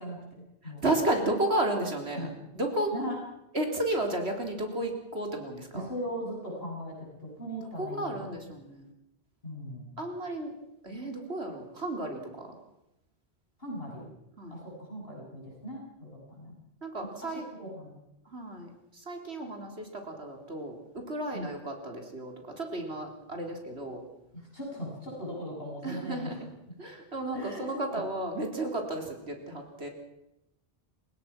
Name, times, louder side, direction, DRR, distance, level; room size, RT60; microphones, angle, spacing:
voice 1, 0.0-0.9 2.1-2.3 2.9-3.2 5.7-8.5 9.4-10.0 13.6-14.1 14.5-16.6 17.0-18.0 21.3-21.5 24.3-26.4 27.3-27.6 27.9-28.0, equal, 65° left, -2 dB, 7.7 m, -39 dB
voice 2, 0.6-2.3 2.5-2.9 3.5-5.9 7.8-8.9 10.0-10.5 10.8-12.5 14.4-14.5 16.8-17.4 18.3-20.8 21.1-24.0 25.8-26.4 26.8-29.9, right 1 dB, 80° right, 3 dB, 4.2 m, -33 dB
29.0 x 17.0 x 6.0 m, 0.88 s
omnidirectional pair, 1.1 m